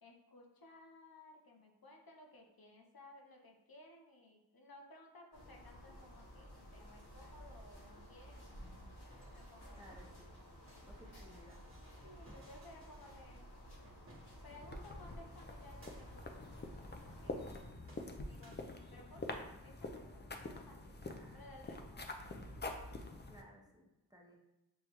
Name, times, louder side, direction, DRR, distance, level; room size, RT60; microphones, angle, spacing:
voice 1, 0.0-8.9 9.3-9.8 12.0-13.5 14.4-17.6 18.2-18.6 18.9-21.0 21.3-22.3, left 1 dB, 65° left, 1 dB, 0.7 m, -59 dB
sound 1, 5.3-17.7, equal, 85° left, 1.0 m, -55 dB
sound 2, 8.8-14.8 15.5-16.3 16.9-17.6 17.9-19.3, equal, 35° right, 1.0 m, -64 dB
voice 2, 9.7-10.4 10.9-11.6 21.0-21.5 23.3-24.4, equal, 10° right, -3 dB, 0.7 m, -60 dB
sound 3, 14.5-23.4, left 2 dB, 30° left, 0.4 m, -46 dB
6.3 x 2.2 x 2.9 m, 0.98 s
wide cardioid pair, 55°, 38 cm